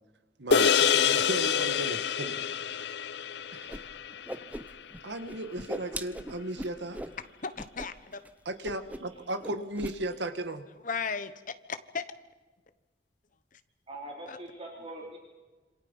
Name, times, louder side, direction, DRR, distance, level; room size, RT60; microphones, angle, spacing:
voice 1, 0.4-2.4 3.5-3.9 5.0-7.0 8.5-10.6, right 1 dB, 85° right, 1.7 m, -36 dB
sound 1, 0.5-5.1, left 7 dB, 75° left, 0.6 m, -27 dB
Whoosh swoosh swish, 3.7-3.8 4.1-5.0 5.3-7.2 7.6-7.9 8.1-8.3 8.6-9.2 9.4-10.0, right 1 dB, 10° right, 0.8 m, -39 dB
voice 2, 7.4-8.2 10.8-11.3 11.7-12.0 13.5-13.6 14.3-14.4, left 5 dB, 50° left, 1.2 m, -35 dB
voice 3, 13.9-15.2, right 1 dB, 35° right, 3.3 m, -42 dB
27.0 x 26.5 x 5.6 m
head